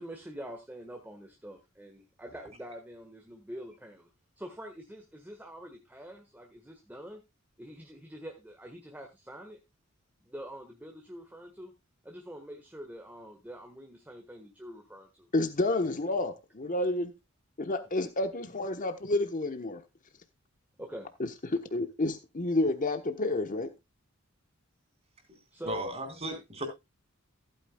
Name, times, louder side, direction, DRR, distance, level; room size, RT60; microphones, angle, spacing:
voice 1, 0.0-4.1 4.4-7.2 7.6-9.6 10.2-11.7 12.0-15.3 20.8-21.1 25.5-25.8, right 1 dB, 10° right, 1.5 m, -45 dB
voice 2, 15.3-17.1 17.6-19.8 21.2-23.7, left 2 dB, 40° left, 1.2 m, -30 dB
voice 3, 25.6-26.7, right 1 dB, 30° right, 3.7 m, -35 dB
15.0 x 9.2 x 2.3 m
head